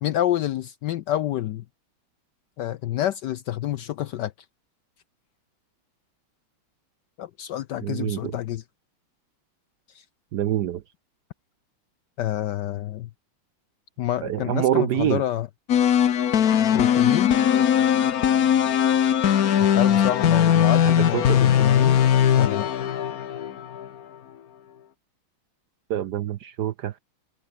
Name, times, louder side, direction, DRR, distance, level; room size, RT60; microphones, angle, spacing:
voice 1, 0.0-1.6 2.6-4.3 7.2-8.6 9.9-10.0 12.2-13.1 14.0-15.5 16.7-17.3 19.6-22.0 22.3-22.7, left 12 dB, 75° left, 1.0 m, -28 dB
voice 2, 7.8-8.3 10.3-10.8 14.2-15.2 20.8-21.4 25.9-27.0, right 11 dB, 70° right, 1.0 m, -25 dB
sound 1, 15.7-23.9, left 9 dB, 50° left, 1.3 m, -20 dB
omnidirectional pair, 2.4 m